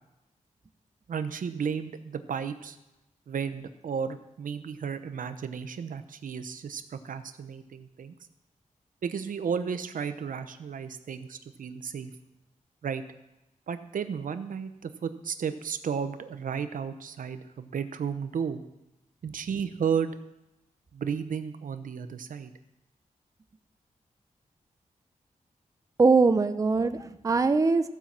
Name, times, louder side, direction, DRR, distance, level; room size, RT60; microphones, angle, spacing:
voice 1, 1.1-2.8 3.3-8.1 9.0-12.1 12.8-13.0 13.7-18.6 19.2-20.1 20.9-22.5, right 7 dB, 85° right, 10 dB, 0.8 m, -33 dB
voice 2, 26.0-27.9, right 4 dB, 25° right, 10 dB, 0.5 m, -22 dB
14.5 x 5.7 x 7.3 m, 0.92 s
wide cardioid pair, 130°, 14 cm